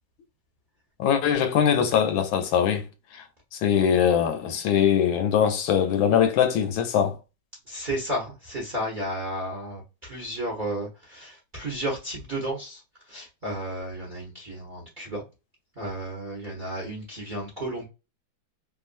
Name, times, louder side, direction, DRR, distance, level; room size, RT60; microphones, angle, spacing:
voice 1, 1.0-2.8 3.1-3.2 3.5-7.2, left 8 dB, 80° left, 1.3 m, -22 dB
voice 2, 7.7-12.8 13.1-15.2 15.8-17.8, right 1 dB, 40° right, 0.7 m, -33 dB
3.1 x 2.5 x 2.5 m
omnidirectional pair, 2.2 m